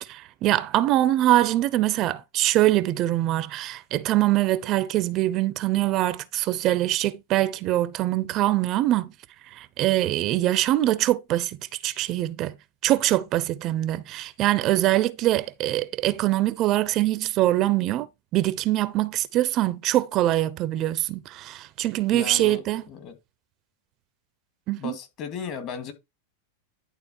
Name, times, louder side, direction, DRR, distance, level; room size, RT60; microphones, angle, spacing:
voice 1, 0.0-9.1 9.5-11.6 11.8-12.5 12.8-18.1 18.3-22.8 24.7-24.9, right 15 dB, 40° right, 0.7 m, -23 dB
voice 2, 22.1-23.2 24.8-25.9, left 6 dB, 40° left, 2.3 m, -36 dB
11.0 x 3.7 x 4.5 m
hypercardioid pair, 115°, 0 cm